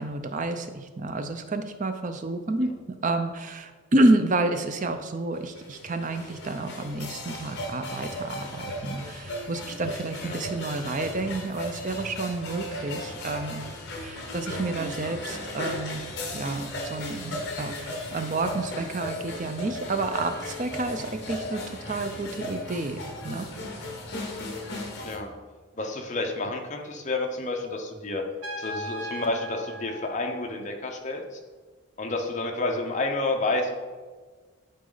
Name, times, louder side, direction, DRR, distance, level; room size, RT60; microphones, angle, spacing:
voice 1, 0.0-2.7 3.0-13.6 14.0-16.0 16.3-23.5, right 2 dB, 35° right, 8 dB, 0.5 m, -29 dB
sound 1, 5.3-25.2, left 1 dB, 50° left, 1.1 m, -36 dB
voice 2, 25.0-25.3 25.8-28.2 28.6-31.4 32.0-33.8, left 2 dB, 35° left, 2 dB, 0.8 m, -30 dB
Trumpet, 28.4-31.1, left 1 dB, 70° right, 1.4 m, -38 dB
9.5 x 4.1 x 3.9 m, 1.4 s
head